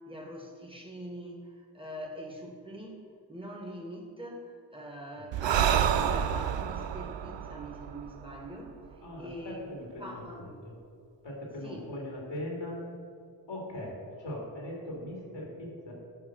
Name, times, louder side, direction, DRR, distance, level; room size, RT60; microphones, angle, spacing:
voice 1, 0.1-9.6 10.0-10.5 11.6-11.9, right 1 dB, 10° right, 0 dB, 1.8 m, -43 dB
Breathing, 5.3-8.9, right 9 dB, 80° right, 0.6 m, -29 dB
voice 2, 9.0-10.7 11.2-12.8 13.5-15.9, left 1 dB, 85° left, -2 dB, 2.5 m, -40 dB
9.0 x 5.3 x 6.5 m, 2.2 s
cardioid pair, 45°, 43 cm